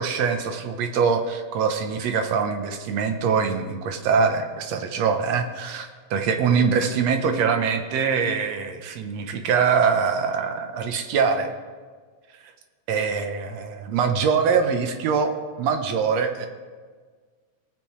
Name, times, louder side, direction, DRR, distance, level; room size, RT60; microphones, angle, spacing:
voice 1, 0.0-11.5 12.9-15.3 15.6-16.5, right 6 dB, 70° right, 6 dB, 1.9 m, -23 dB
18.5 x 9.1 x 3.2 m, 1.5 s
omnidirectional pair, 3.5 m